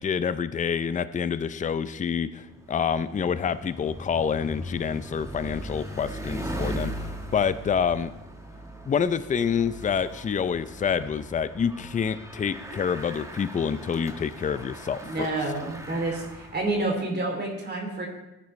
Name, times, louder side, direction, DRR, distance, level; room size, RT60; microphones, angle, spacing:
voice 1, 0.0-2.4 2.7-6.9 7.3-8.1 8.9-15.3, left 7 dB, 25° left, 13 dB, 0.5 m, -27 dB
Bicycle, 2.3-16.9, right 1 dB, 10° right, 1.5 m, -39 dB
voice 2, 15.0-18.1, right 2 dB, 35° right, 0 dB, 2.9 m, -29 dB
15.0 x 9.4 x 3.2 m, 0.93 s
cardioid pair, 90°, 30 cm